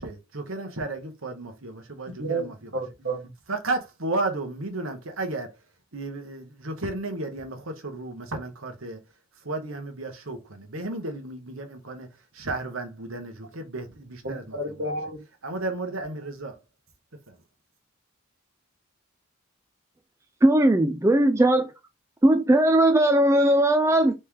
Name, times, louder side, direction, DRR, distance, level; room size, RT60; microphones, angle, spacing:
voice 1, 0.0-2.7 3.5-5.6 5.9-9.0 9.4-14.7 15.4-16.6 17.3-17.4, right 2 dB, 70° right, 1.2 m, -33 dB
voice 2, 2.2-3.3 14.2-15.2, right 2 dB, 55° right, 1.7 m, -31 dB
voice 3, 20.4-21.7 22.2-24.3, right 1 dB, 15° right, 0.3 m, -19 dB
4.3 x 3.2 x 3.7 m
head